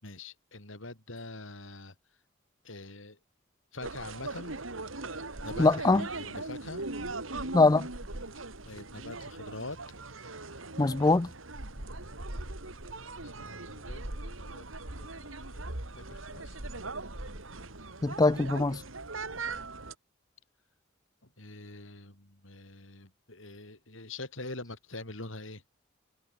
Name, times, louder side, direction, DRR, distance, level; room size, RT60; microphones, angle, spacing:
voice 1, 0.0-1.9 2.6-3.2 3.7-4.6 5.4-6.8 8.6-9.8 13.1-14.6 15.0-15.6 15.9-16.6 21.4-25.6, left 2 dB, 80° left, 4.9 m, -44 dB
sound 1, 3.8-19.9, right 2 dB, 90° right, 3.4 m, -40 dB
voice 2, 5.6-6.0 7.5-7.9 10.8-11.3 18.0-18.8, left 3 dB, 20° left, 0.4 m, -22 dB
head